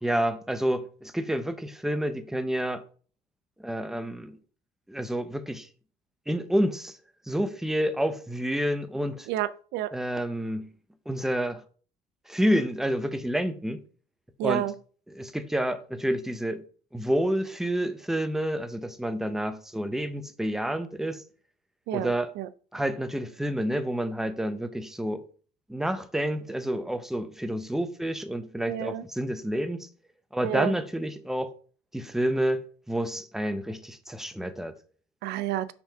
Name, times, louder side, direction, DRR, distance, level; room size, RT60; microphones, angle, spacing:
voice 1, 0.0-2.8 3.6-4.4 4.9-5.7 6.3-6.9 7.3-9.3 9.9-10.7 11.1-11.6 12.3-13.8 14.4-14.6 15.1-16.6 16.9-21.2 21.9-22.3 22.7-25.2 25.7-29.9 30.3-31.5 31.9-34.7, equal, ahead, 0.7 m, -29 dB
voice 2, 9.3-9.9 14.4-14.7 21.9-22.5 28.7-29.0 30.4-30.7 35.2-35.7, right 13 dB, 85° right, 0.5 m, -30 dB
5.9 x 3.5 x 5.6 m
cardioid pair, 110°, 17 cm